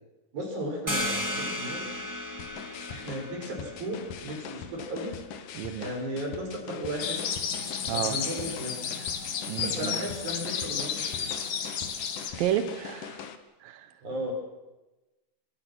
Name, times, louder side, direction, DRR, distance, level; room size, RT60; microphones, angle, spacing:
voice 1, 0.3-1.9 2.9-5.2 5.8-7.2 7.9-9.1 9.6-11.3 14.0-14.3, right 1 dB, 40° right, 2 dB, 7.0 m, -35 dB
sound 1, 0.9-6.2, left 1 dB, 15° right, 0.6 m, -36 dB
sound 2, 2.4-13.4, left 7 dB, 80° left, 1.8 m, -42 dB
voice 2, 5.5-5.9 7.9-8.2 9.5-9.9 12.4-13.3 13.6-13.9, right 10 dB, 80° right, 10 dB, 2.0 m, -31 dB
sound 3, 7.0-12.3, left 7 dB, 55° left, 3.1 m, -32 dB
25.5 x 22.5 x 6.2 m, 1.1 s
omnidirectional pair, 5.7 m